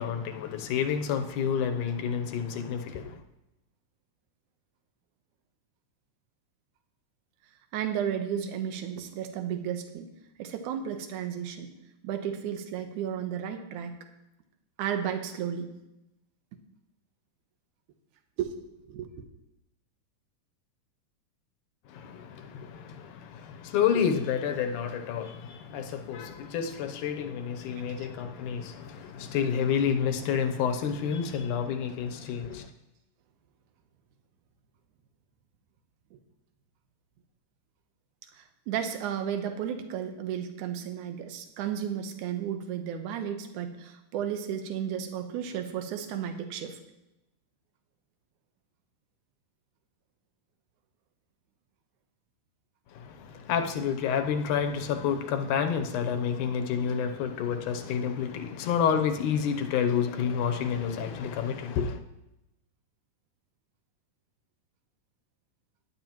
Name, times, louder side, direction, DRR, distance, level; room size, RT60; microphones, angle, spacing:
voice 1, 0.0-3.2 21.9-32.7 52.9-62.0, left 7 dB, 75° left, 2.2 m, -29 dB
voice 2, 7.7-10.1 10.4-11.7 12.0-14.0 14.8-15.7 18.4-18.5 18.9-19.1 28.0-28.1 36.1-36.2 38.3-46.8, right 9 dB, 70° right, 2.3 m, -33 dB
16.5 x 11.0 x 3.0 m
omnidirectional pair, 3.9 m